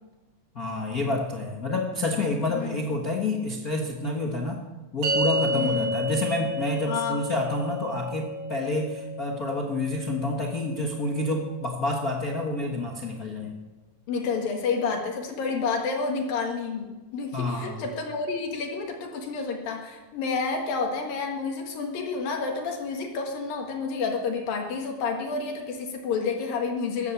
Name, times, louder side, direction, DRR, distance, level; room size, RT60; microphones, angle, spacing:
voice 1, 0.5-4.6 4.9-13.6 17.3-17.8, left 2 dB, 50° left, -1 dB, 1.1 m, -28 dB
voice 2, 2.5-2.9 5.5-5.9 6.9-7.2 14.1-27.1, left 4 dB, 75° left, 1 dB, 3.5 m, -30 dB
sound 1, 5.0-11.6, equal, 70° right, 4.3 m, -31 dB
15.0 x 11.0 x 7.2 m, 1.2 s
omnidirectional pair, 4.1 m